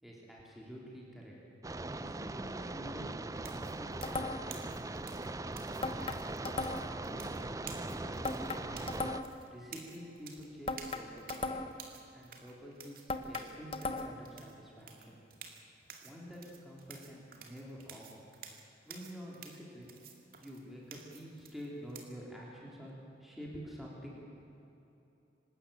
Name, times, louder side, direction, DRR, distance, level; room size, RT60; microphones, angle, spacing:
voice 1, 0.0-1.4 1.7-6.1 6.9-9.1 9.5-11.4 12.1-15.2 16.0-18.2 18.8-19.9 20.4-24.2, equal, ahead, -4 dB, 3.4 m, -48 dB
sound 1, 1.6-9.2, right 2 dB, 20° right, 0.5 m, -40 dB
sound 2, 3.4-22.0, right 6 dB, 50° right, 2.3 m, -52 dB
sound 3, 4.0-4.6 5.8-7.0 8.2-9.5 10.7-11.9 13.1-14.3, left 3 dB, 30° left, 1.1 m, -38 dB
25.5 x 13.0 x 9.1 m, 3.0 s
head